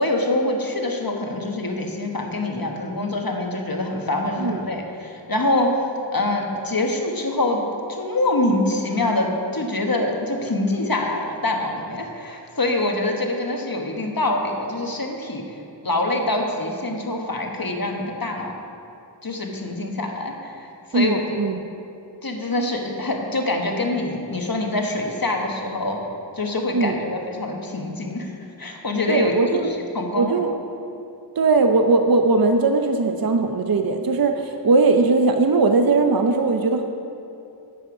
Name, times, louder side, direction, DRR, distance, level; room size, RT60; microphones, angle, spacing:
voice 1, 0.0-5.7 6.1-7.6 7.9-15.4 15.8-18.5 19.2-21.5 22.2-26.0 26.3-28.3 28.6-30.4, left 2 dB, 50° left, 2 dB, 1.3 m, -25 dB
voice 2, 20.9-21.6 26.7-27.0 29.1-29.7 30.1-30.5 31.4-36.8, right 3 dB, 50° right, 5 dB, 0.6 m, -19 dB
11.0 x 7.8 x 4.9 m, 2.7 s
wide cardioid pair, 45°, 44 cm